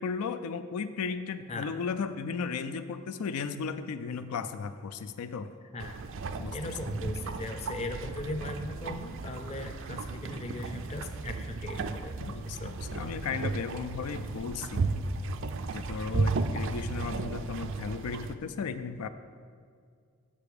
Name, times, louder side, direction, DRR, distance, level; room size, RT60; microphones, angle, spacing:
voice 1, 0.0-5.5 6.4-6.7 12.2-14.9 15.7-19.1, left 5 dB, 85° left, 10 dB, 0.4 m, -35 dB
sound 1, 5.8-18.4, right 3 dB, 60° right, 0.4 m, -34 dB
voice 2, 6.5-12.1 12.6-12.9, left 1 dB, 30° left, 6 dB, 0.5 m, -38 dB
6.9 x 6.9 x 4.8 m, 2.1 s
head